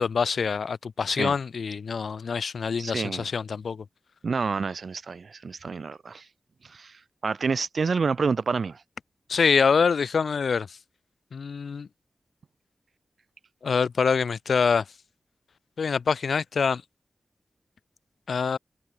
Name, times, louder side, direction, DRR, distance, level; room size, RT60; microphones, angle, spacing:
voice 1, 0.0-3.8 9.3-10.8 11.3-11.9 13.6-14.8 15.8-16.8 18.3-18.6, left 5 dB, 80° left, 1.6 m, -25 dB
voice 2, 2.8-3.3 4.2-6.2 6.6-8.8, right 5 dB, 60° right, 4.6 m, -28 dB
wide cardioid pair, 140°, 0 cm